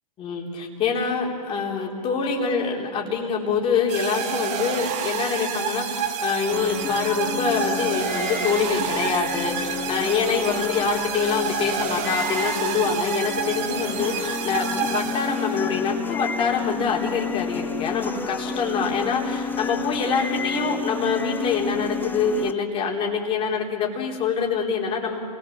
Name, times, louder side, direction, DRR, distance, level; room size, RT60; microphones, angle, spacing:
voice 1, 0.2-25.2, left 5 dB, 25° left, -1 dB, 3.8 m, -25 dB
sound 1, 3.9-15.7, right 8 dB, 35° right, 1.7 m, -29 dB
sound 2, 6.5-22.5, left 6 dB, 10° left, 0.6 m, -31 dB
28.0 x 18.5 x 7.3 m, 2.7 s
hypercardioid pair, 130°, 21 cm